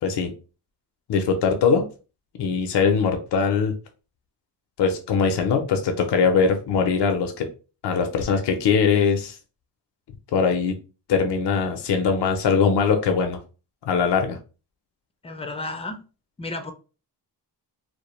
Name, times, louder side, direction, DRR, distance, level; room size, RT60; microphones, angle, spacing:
voice 1, 0.0-0.3 1.1-1.8 2.4-3.7 4.8-7.5 7.8-9.4 10.3-10.8 11.1-13.4 13.8-14.4, left 5 dB, 70° left, 0.5 m, -21 dB
voice 2, 15.2-16.0 16.4-16.7, left 2 dB, 15° left, 0.4 m, -32 dB
2.2 x 2.1 x 2.9 m
cardioid pair, 70°, 42 cm